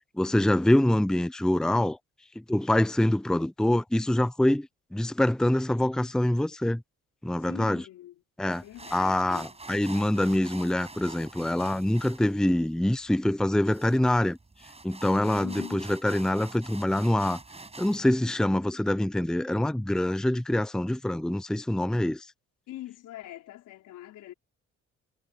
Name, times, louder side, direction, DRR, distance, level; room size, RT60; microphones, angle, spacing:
voice 1, 0.1-2.0 2.5-6.8 7.2-7.8 8.4-8.6 8.9-14.4 14.8-17.4 17.8-22.3, left 1 dB, ahead, 0.7 m, -25 dB
voice 2, 7.4-8.2 8.6-9.5 15.4-15.9 22.7-24.3, left 14 dB, 85° left, 4.6 m, -43 dB
sound 1, 8.5-18.1, right 3 dB, 20° right, 5.9 m, -46 dB
cardioid pair, 90°, 30 cm